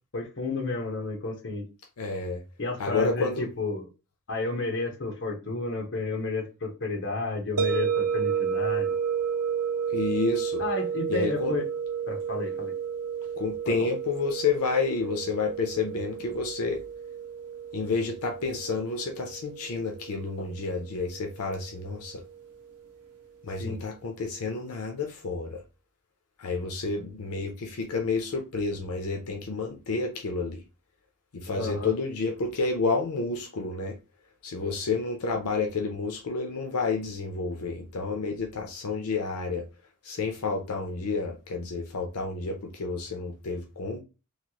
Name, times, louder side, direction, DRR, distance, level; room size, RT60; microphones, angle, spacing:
voice 1, 0.1-1.6 2.6-3.9 4.3-8.9 10.6-11.6 12.1-12.7 13.6-13.7 20.4-20.5 23.6-23.8 31.5-31.9, left 3 dB, 55° left, 0.9 m, -32 dB
voice 2, 2.0-2.4 2.8-3.5 9.9-10.6 11.1-11.5 13.4-16.8 17.7-22.2 23.4-25.6 26.4-30.6 31.3-34.0 34.4-39.7 40.0-44.0, left 4 dB, 80° left, 0.6 m, -30 dB
sound 1, 7.6-22.5, right 7 dB, 85° right, 0.7 m, -32 dB
3.2 x 2.3 x 2.8 m
head